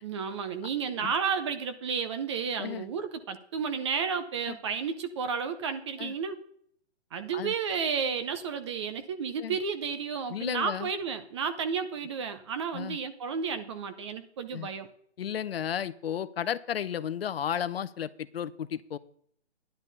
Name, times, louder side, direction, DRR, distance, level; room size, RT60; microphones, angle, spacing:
voice 1, 0.0-6.4 7.1-14.9, right 6 dB, 25° right, 10 dB, 0.7 m, -32 dB
voice 2, 10.3-10.9 12.7-13.0 14.5-14.7 15.2-19.0, left 9 dB, 60° left, 14 dB, 0.7 m, -33 dB
10.5 x 10.5 x 4.0 m, 0.63 s
hypercardioid pair, 155°, 34 cm